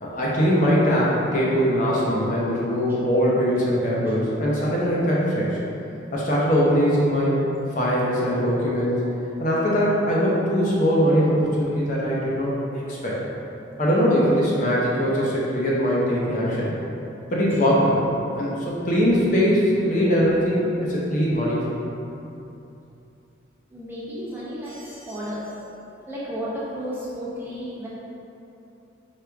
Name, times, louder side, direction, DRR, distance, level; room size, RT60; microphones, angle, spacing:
voice 1, 0.0-5.6 6.1-7.5 7.8-9.1 9.4-12.5 12.9-13.2 13.8-16.7 17.3-18.0 18.3-21.7, equal, 40° left, -6 dB, 0.6 m, -21 dB
voice 2, 23.7-25.6 26.1-27.9, equal, 10° right, -9 dB, 0.7 m, -33 dB
4.5 x 2.4 x 3.4 m, 2.8 s
head